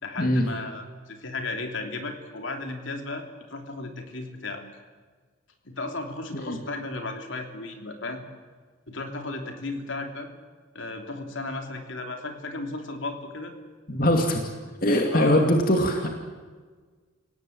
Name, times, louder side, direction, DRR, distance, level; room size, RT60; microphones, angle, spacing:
voice 1, 0.0-4.6 5.6-8.2 8.9-10.3 10.7-13.5 15.1-15.4, left 2 dB, 65° left, 5 dB, 3.2 m, -34 dB
voice 2, 13.9-14.4 14.8-16.1, equal, 45° left, 3 dB, 2.5 m, -22 dB
29.0 x 18.0 x 8.7 m, 1.5 s
head